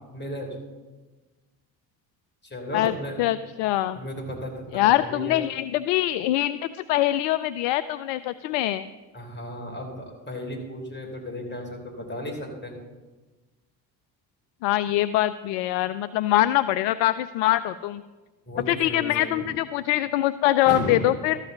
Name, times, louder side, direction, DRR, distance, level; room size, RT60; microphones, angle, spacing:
voice 1, 0.1-0.5 2.4-3.2 3.9-5.4 9.1-12.7 18.5-19.5 20.6-21.1, left 1 dB, 20° left, 1 dB, 3.3 m, -34 dB
voice 2, 3.2-4.0 4.7-8.9 14.6-18.0 18.7-21.4, left 14 dB, 60° left, 14 dB, 0.5 m, -23 dB
13.0 x 4.9 x 7.7 m, 1.2 s
hypercardioid pair, 55°, 49 cm